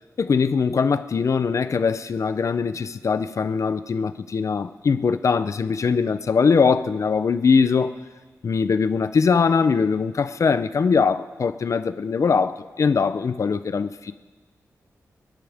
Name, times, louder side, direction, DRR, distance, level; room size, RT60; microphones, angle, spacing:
voice 1, 0.2-7.9 8.4-14.1, left 5 dB, 60° left, 12 dB, 0.6 m, -21 dB
28.0 x 11.0 x 3.5 m, 1.4 s
wide cardioid pair, 105°, 6 cm